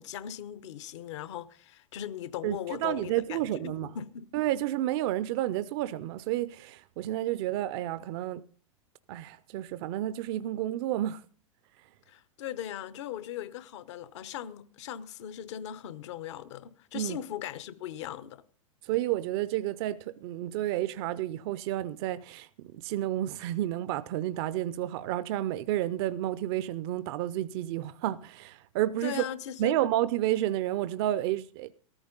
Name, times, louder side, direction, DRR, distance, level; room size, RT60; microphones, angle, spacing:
voice 1, 0.0-4.3 12.1-18.4 29.0-29.8, left 10 dB, 60° left, 1.0 m, -39 dB
voice 2, 2.4-3.9 4.3-8.4 9.1-11.2 16.9-17.2 18.8-29.2 29.6-31.7, right 13 dB, 50° right, 0.6 m, -30 dB
14.0 x 13.5 x 3.9 m
hypercardioid pair, 95°, 17 cm